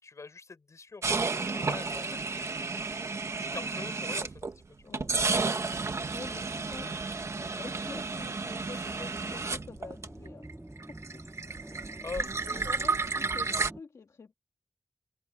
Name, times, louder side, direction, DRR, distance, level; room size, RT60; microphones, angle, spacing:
voice 1, 0.0-2.9 3.3-4.5 4.8-4.9 8.7-8.9 12.0-12.7, left 4 dB, 65° left, 7.3 m, -44 dB
sound 1, 1.0-4.6 4.9-10.5 10.8-13.7, right 4 dB, 60° right, 1.4 m, -32 dB
voice 2, 4.8-5.1 6.1-7.0 7.3-10.5 11.1-11.2 11.7-11.9 12.2-14.3, left 5 dB, 85° left, 2.3 m, -47 dB
sound 2, 5.6-13.8, right 1 dB, 15° right, 2.4 m, -48 dB
wide cardioid pair, 100°, 6 cm